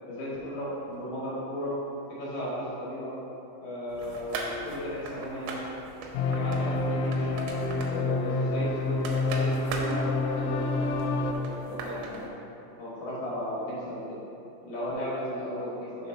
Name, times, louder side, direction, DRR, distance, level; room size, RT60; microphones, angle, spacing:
voice 1, 0.1-1.7 2.1-3.1 3.6-5.7 6.3-7.4 7.8-10.7 11.1-11.4 11.7-12.3 12.8-14.2 14.6-16.1, left 1 dB, 65° left, -8 dB, 2.4 m, -35 dB
sound 1, 3.9-12.3, right 3 dB, 85° right, 3.0 m, -40 dB
sound 2, 6.1-11.3, left 2 dB, 85° left, 3.0 m, -28 dB
6.7 x 4.0 x 5.6 m, 2.9 s
omnidirectional pair, 5.6 m